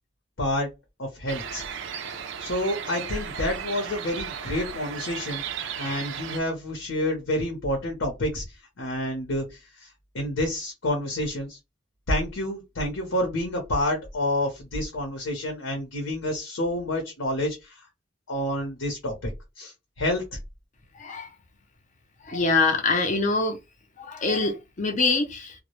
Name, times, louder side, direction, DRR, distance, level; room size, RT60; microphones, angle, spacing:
voice 1, 0.4-0.7 1.0-1.6 2.4-8.4 8.8-9.9 10.1-11.6 12.1-17.8 18.3-19.3 19.6-20.2, left 1 dB, 85° left, 0.7 m, -28 dB
sound 1, 1.3-6.4, right 7 dB, 70° right, 0.4 m, -35 dB
voice 2, 21.0-21.3 22.2-23.6 24.0-25.5, left 3 dB, 40° left, 0.5 m, -24 dB
2.1 x 2.0 x 2.9 m
head